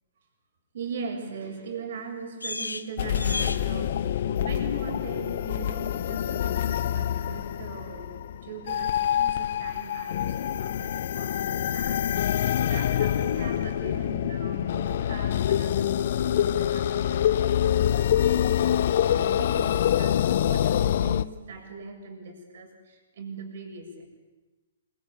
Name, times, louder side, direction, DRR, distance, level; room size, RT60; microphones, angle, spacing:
voice 1, 0.7-24.1, right 4 dB, 50° right, 4 dB, 7.2 m, -40 dB
sound 1, 1.9-21.7, left 3 dB, 80° left, 1.5 m, -45 dB
sound 2, 3.0-21.2, left 10 dB, 50° left, 0.8 m, -26 dB
27.0 x 25.5 x 8.6 m, 1.2 s
figure-of-eight pair, 120°, 0 cm